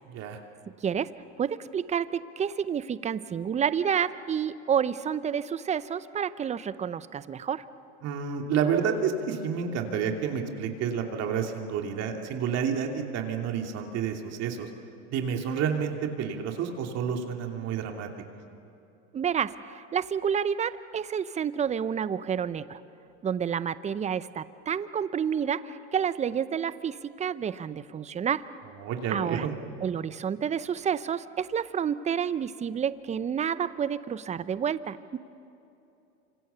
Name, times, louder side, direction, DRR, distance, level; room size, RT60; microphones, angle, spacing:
voice 1, 0.1-0.4 8.0-14.7 15.1-18.1 28.8-29.5, right 7 dB, 45° right, 3 dB, 2.8 m, -29 dB
voice 2, 1.4-7.6 19.1-22.8 23.2-28.4 29.1-29.5 29.8-35.2, right 8 dB, 20° right, 15 dB, 0.7 m, -29 dB
28.0 x 26.0 x 7.0 m, 2.8 s
supercardioid pair, 110°, 35 cm